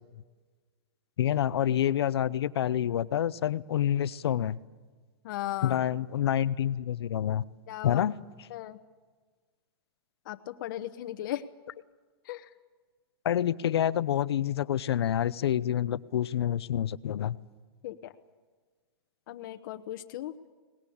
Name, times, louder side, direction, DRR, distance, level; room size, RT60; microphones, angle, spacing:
voice 1, 1.2-4.6 5.6-7.4 7.8-8.2 13.2-17.4, left 10 dB, 85° left, 17 dB, 0.8 m, -27 dB
voice 2, 5.2-5.8 7.7-8.1 8.5-8.8 10.3-11.4 12.2-12.5 17.8-18.1 19.3-20.3, left 14 dB, 55° left, 7 dB, 1.1 m, -37 dB
23.0 x 19.5 x 8.7 m, 1.4 s
hypercardioid pair, 155°, 13 cm